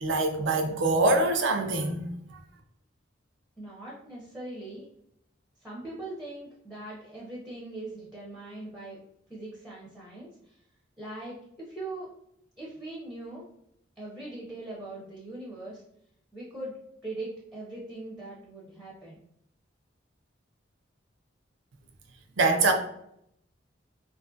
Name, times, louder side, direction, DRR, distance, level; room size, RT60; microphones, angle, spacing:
voice 1, 0.0-2.1 22.4-22.7, right 2 dB, 75° right, 0.4 m, -24 dB
voice 2, 3.6-4.9 5.6-9.0 9.3-10.6 11.0-12.1 12.6-13.5 14.0-15.8 16.3-16.7 17.0-19.2, right 2 dB, ahead, 0.5 m, -41 dB
2.5 x 2.4 x 2.5 m
head